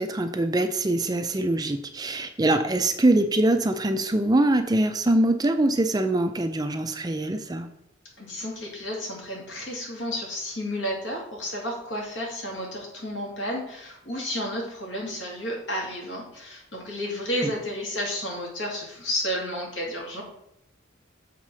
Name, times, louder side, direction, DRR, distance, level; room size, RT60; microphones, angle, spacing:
voice 1, 0.0-7.7 17.4-17.5, right 1 dB, 20° right, 7 dB, 0.5 m, -23 dB
voice 2, 8.2-20.2, equal, 70° left, -2 dB, 2.6 m, -32 dB
7.4 x 3.7 x 6.2 m, 0.74 s
head